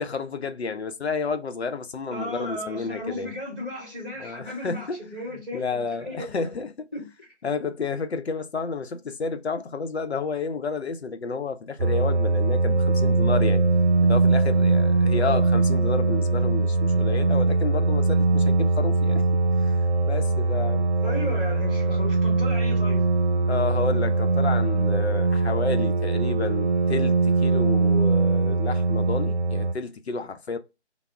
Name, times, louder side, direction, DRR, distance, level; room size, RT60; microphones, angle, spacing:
voice 1, 0.0-3.3 4.2-5.0 5.3-6.9 7.4-13.6 14.0-19.2 19.7-19.8 20.1-20.9 23.5-30.6, left 4 dB, 65° left, 0.6 m, -31 dB
voice 2, 2.1-5.8 6.0-6.5 6.9-7.3 15.1-15.5 21.0-23.0, left 1 dB, 10° right, 1.2 m, -35 dB
sound 1, 11.8-29.7, right 3 dB, 65° right, 0.7 m, -21 dB
3.4 x 2.0 x 3.3 m
figure-of-eight pair, 155°, 35 cm